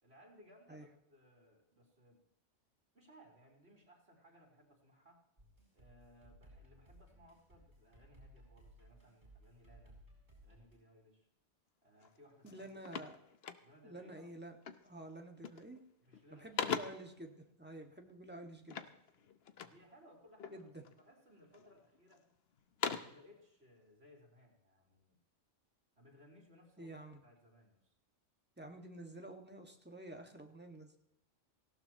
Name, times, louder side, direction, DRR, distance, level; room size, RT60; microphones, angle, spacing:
voice 1, 0.0-2.2 2.9-5.3 5.7-10.0 10.4-11.3 11.8-12.8 13.6-14.3 16.0-16.8 19.6-20.7 21.0-22.3 23.0-25.2 26.0-27.9, equal, 60° right, -1 dB, 3.8 m, -63 dB
chill tune for a game, 5.4-10.8, right 1 dB, 40° right, 7.5 m, -61 dB
sound 1, 12.0-12.2 12.5-14.0 14.6-15.0 15.3-15.8 16.1-17.2 18.7-19.9 20.4-21.0 21.5-22.2 22.6-23.3, left 6 dB, 60° left, 1.0 m, -42 dB
voice 2, 12.4-13.2 13.8-14.6 14.8-15.8 16.3-18.8 20.5-20.8 26.8-27.2 28.6-31.0, right 1 dB, 10° right, 3 dB, 1.7 m, -50 dB
18.5 x 16.5 x 3.0 m, 0.81 s
omnidirectional pair, 1.2 m